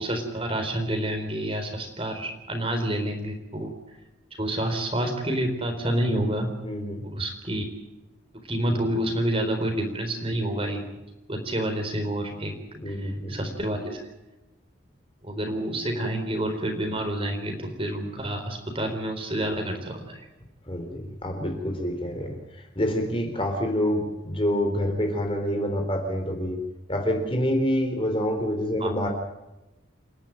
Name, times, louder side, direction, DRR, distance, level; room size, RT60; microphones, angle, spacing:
voice 1, 0.0-3.7 4.4-6.5 7.0-7.6 8.4-10.8 11.3-14.0 15.2-20.2 28.8-28.9, right 1 dB, 30° right, 5 dB, 4.1 m, -28 dB
voice 2, 6.6-7.0 12.8-13.4 20.7-26.6 26.9-29.1, equal, 25° left, 4 dB, 3.8 m, -27 dB
29.0 x 11.5 x 9.1 m, 0.99 s
head